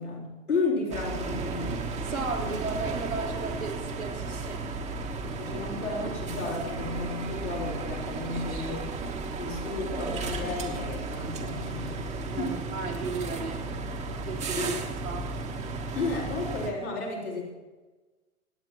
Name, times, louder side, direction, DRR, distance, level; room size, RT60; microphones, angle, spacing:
voice 1, 0.0-1.7 2.4-2.6 5.2-8.8 9.3-12.1 12.4-12.6 14.5-14.8 15.9-17.5, left 3 dB, 85° left, -7 dB, 4.6 m, -33 dB
sound 1, 0.9-16.7, right 3 dB, 15° right, 1.3 m, -34 dB
voice 2, 2.0-4.7 8.3-8.8 9.6-9.7 12.2-13.7 14.2-14.7 15.0-15.4, right 4 dB, 85° right, -3 dB, 4.1 m, -35 dB
25.0 x 9.0 x 3.1 m, 1.2 s
figure-of-eight pair, 110°, 42 cm